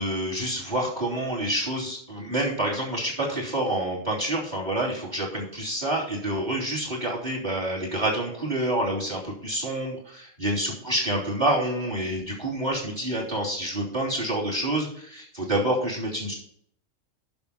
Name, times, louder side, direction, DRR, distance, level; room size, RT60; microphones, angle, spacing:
voice 1, 0.0-16.3, right 1 dB, 30° right, -2 dB, 3.4 m, -28 dB
10.5 x 5.9 x 4.3 m, 0.64 s
omnidirectional pair, 1.4 m